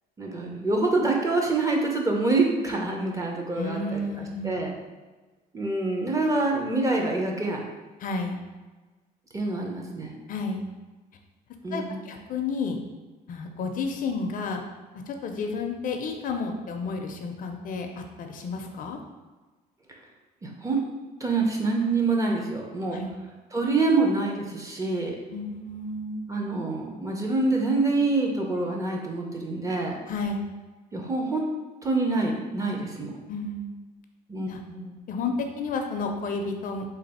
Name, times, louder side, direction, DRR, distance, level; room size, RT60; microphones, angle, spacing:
voice 1, 0.2-4.7 5.5-7.6 9.3-10.1 11.6-12.2 20.4-20.8 21.2-23.0 23.5-25.2 26.3-30.0 30.9-31.4 31.8-33.1 34.3-35.0, right 3 dB, 20° right, 0 dB, 0.6 m, -26 dB
voice 2, 3.6-4.6 8.0-8.4 10.3-10.6 11.7-12.8 13.3-14.6 15.1-19.0 22.9-23.1 25.3-26.2 30.1-30.4 33.3-33.7 34.5-34.6 35.1-36.8, left 3 dB, 55° left, 4 dB, 0.5 m, -31 dB
3.3 x 2.4 x 4.1 m, 1.2 s
cardioid pair, 110°, 17 cm